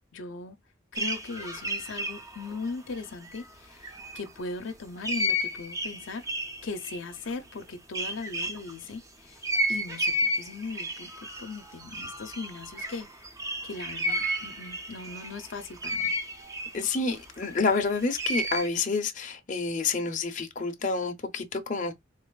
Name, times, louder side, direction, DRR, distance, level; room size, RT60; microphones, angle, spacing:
voice 1, 0.1-0.6 0.9-13.1 13.6-16.1, left 4 dB, 80° left, 0.7 m, -39 dB
sound 1, 0.9-3.6 3.8-4.3 5.0-8.7 9.4-18.7, equal, 15° right, 0.6 m, -32 dB
voice 2, 16.7-21.9, left 4 dB, 40° left, 0.7 m, -28 dB
3.9 x 3.0 x 2.3 m
head